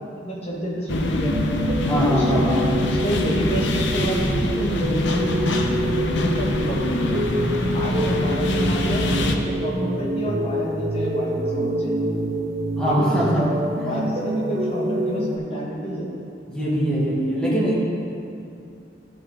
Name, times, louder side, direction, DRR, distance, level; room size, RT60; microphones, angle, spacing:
voice 1, 0.2-1.3 2.1-2.5 2.8-7.3 7.7-12.1 12.8-13.5 13.8-16.1, right 1 dB, 30° left, -4 dB, 1.5 m, -29 dB
sound 1, 0.9-9.4, left 2 dB, 75° left, 0.7 m, -25 dB
sound 2, 1.2-15.4, right 1 dB, 35° right, 0.7 m, -26 dB
voice 2, 1.9-2.8 12.8-13.4 16.5-17.8, equal, 5° left, -8 dB, 1.9 m, -22 dB
13.0 x 5.7 x 3.7 m, 2.5 s
head